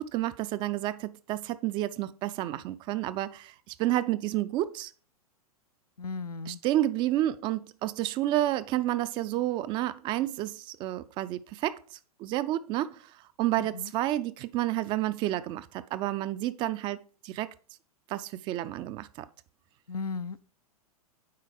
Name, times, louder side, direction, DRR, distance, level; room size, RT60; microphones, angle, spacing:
voice 1, 0.0-4.9 6.5-11.8 12.2-13.0 13.4-17.5 18.1-19.3, right 14 dB, 25° right, 0.4 m, -30 dB
voice 2, 6.0-6.6 13.6-13.9 19.9-20.4, left 4 dB, 80° left, 0.5 m, -36 dB
9.3 x 4.0 x 4.9 m
figure-of-eight pair, 100°, 19 cm